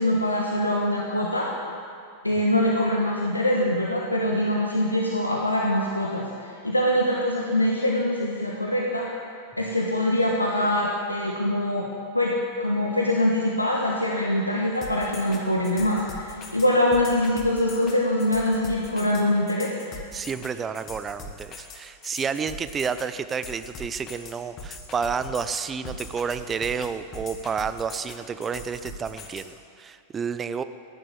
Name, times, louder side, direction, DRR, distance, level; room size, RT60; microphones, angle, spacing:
voice 1, 0.0-1.5 2.2-9.1 9.6-19.7, left 1 dB, 85° left, -1 dB, 1.4 m, -24 dB
sound 1, 14.8-29.4, left 2 dB, 30° left, 2.3 m, -41 dB
voice 2, 20.1-30.6, right 6 dB, 20° right, 12 dB, 0.7 m, -30 dB
16.5 x 10.5 x 8.2 m, 2.3 s
figure-of-eight pair, 90°, 0 cm